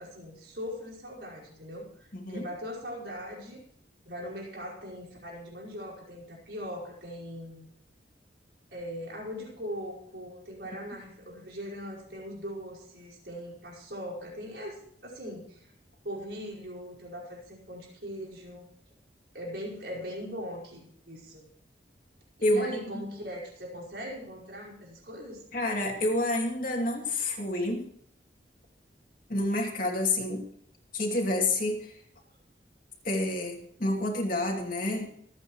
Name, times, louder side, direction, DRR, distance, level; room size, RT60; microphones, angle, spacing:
voice 1, 0.0-3.6 4.0-7.6 8.7-15.7 16.0-18.7 19.3-21.4 22.4-25.5, equal, 70° right, -3 dB, 5.0 m, -40 dB
voice 2, 22.4-23.0 25.5-27.9 29.3-30.5 30.9-31.9 33.0-35.1, left 1 dB, 50° left, 0 dB, 2.7 m, -28 dB
26.0 x 8.9 x 3.1 m, 0.65 s
head